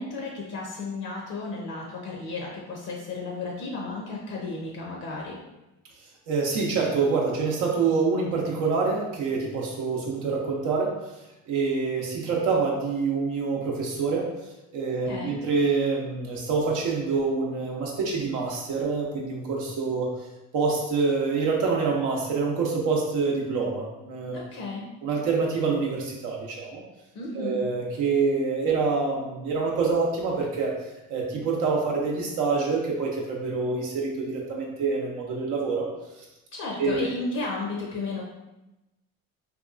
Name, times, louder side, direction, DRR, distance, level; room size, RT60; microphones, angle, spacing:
voice 1, 0.0-5.4 15.1-15.4 24.3-24.9 27.1-27.6 36.5-38.2, left 3 dB, 50° left, -2 dB, 0.6 m, -33 dB
voice 2, 6.3-10.9 11.5-14.3 14.7-20.1 20.5-24.4 25.0-26.8 27.3-30.7 31.1-35.9 36.8-37.0, right 4 dB, 70° right, -2 dB, 0.6 m, -26 dB
2.8 x 2.3 x 2.4 m, 0.99 s
supercardioid pair, 90°, 32 cm